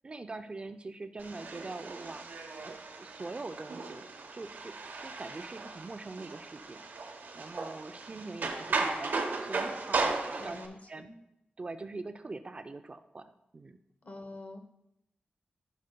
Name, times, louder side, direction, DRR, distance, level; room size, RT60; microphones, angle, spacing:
voice 1, 0.0-4.0 4.3-10.6 10.9-11.1 11.6-13.8, right 3 dB, 30° right, 9 dB, 0.4 m, -43 dB
sound 1, 1.2-10.7, right 3 dB, 70° right, 1.0 m, -36 dB
voice 2, 10.4-11.1 14.0-14.6, left 2 dB, 45° left, 6 dB, 0.9 m, -46 dB
14.5 x 6.4 x 2.2 m, 0.83 s
wide cardioid pair, 140°, 3 cm